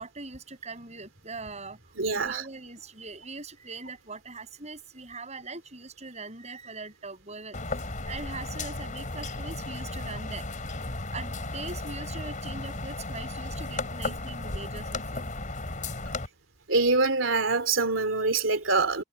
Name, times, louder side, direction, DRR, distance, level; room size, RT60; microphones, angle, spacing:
voice 1, 0.0-10.5 11.1-15.3, right 3 dB, 35° right, 7.7 m, -41 dB
voice 2, 2.0-2.3 16.7-19.0, right 3 dB, 70° right, 2.9 m, -24 dB
sound 1, 7.5-16.3, left 2 dB, 40° left, 3.9 m, -35 dB
head